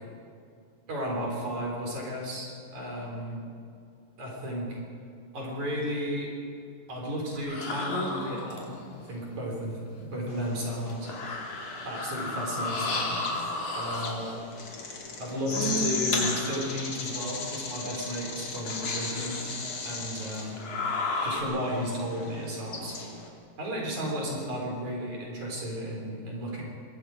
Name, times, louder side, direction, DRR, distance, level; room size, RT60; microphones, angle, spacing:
voice 1, 0.9-3.4 4.2-4.8 5.3-6.3 6.9-11.1 11.8-13.2 13.8-14.4 15.2-19.6 19.8-20.6 21.2-23.0 23.6-26.6, equal, 50° right, -2 dB, 5.6 m, -33 dB
sound 1, 7.4-8.9 10.1-10.2 10.9-14.4 15.4-17.0 17.6-17.7 18.6-19.6 20.4-21.4, left 2 dB, 55° left, 4.1 m, -33 dB
sound 2, 10.3-23.3, left 3 dB, 40° left, 2.8 m, -38 dB
24.5 x 20.5 x 5.1 m, 2.4 s
omnidirectional pair, 4.3 m